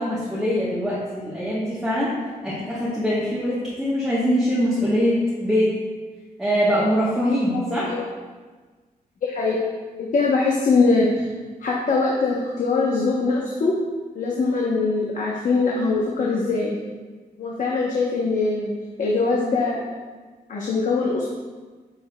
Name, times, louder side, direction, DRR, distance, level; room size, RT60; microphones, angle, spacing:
voice 1, 0.0-2.1 2.4-5.1 5.4-5.7 6.4-7.9, equal, 5° right, -8 dB, 1.1 m, -23 dB
voice 2, 7.5-8.0 9.2-9.6 10.0-11.2 11.6-13.8 14.1-16.8 17.4-18.7 19.0-19.8 20.5-21.3, left 3 dB, 60° left, -3 dB, 0.8 m, -22 dB
8.8 x 5.8 x 2.2 m, 1.4 s
wide cardioid pair, 165°, 15 cm